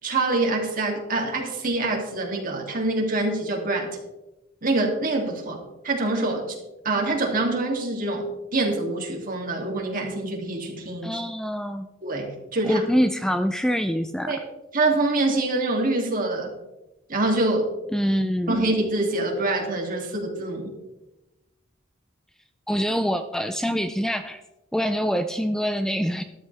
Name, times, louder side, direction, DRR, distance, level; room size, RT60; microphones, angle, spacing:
voice 1, 0.0-3.9 4.6-6.6 6.8-8.3 8.5-11.2 12.0-12.8 14.3-14.4 14.7-16.5 17.1-17.7 18.5-20.7, right 2 dB, 45° right, 0 dB, 2.8 m, -25 dB
voice 2, 11.0-11.9 12.6-14.3 17.9-18.7 22.7-24.4 24.7-26.2, equal, 5° left, 9 dB, 0.5 m, -25 dB
13.0 x 12.5 x 3.5 m, 0.99 s
head